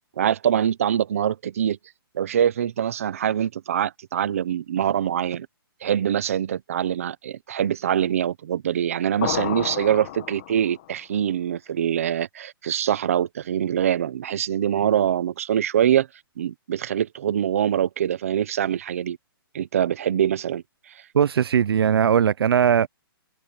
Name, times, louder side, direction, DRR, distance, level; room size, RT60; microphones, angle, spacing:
voice 1, 0.2-1.8 2.1-5.5 5.8-16.1 16.4-19.2 19.5-20.6, right 9 dB, 35° right, 0.8 m, -24 dB
sound 1, 9.2-10.9, left 15 dB, 25° left, 1.1 m, -31 dB
voice 2, 21.1-22.9, right 8 dB, 80° right, 0.5 m, -19 dB
hypercardioid pair, 180°, 12 cm